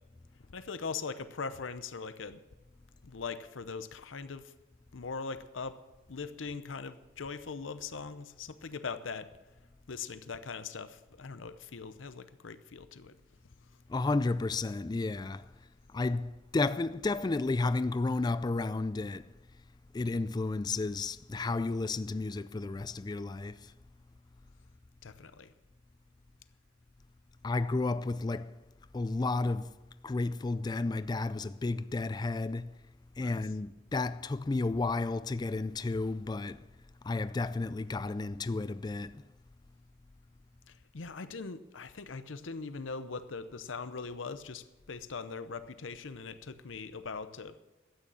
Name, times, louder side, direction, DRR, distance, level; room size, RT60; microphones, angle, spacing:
voice 1, 0.5-2.4 3.0-4.5 4.9-5.8 6.1-9.3 9.9-13.2 25.0-25.5 33.2-33.4 40.7-47.6, left 4 dB, 90° left, 0.7 m, -41 dB
voice 2, 13.9-15.4 15.9-19.3 19.9-23.6 27.4-28.5 28.9-29.7 30.0-32.7 33.2-36.6 37.0-39.2, left 3 dB, 20° left, 0.3 m, -32 dB
12.5 x 9.2 x 7.0 m
head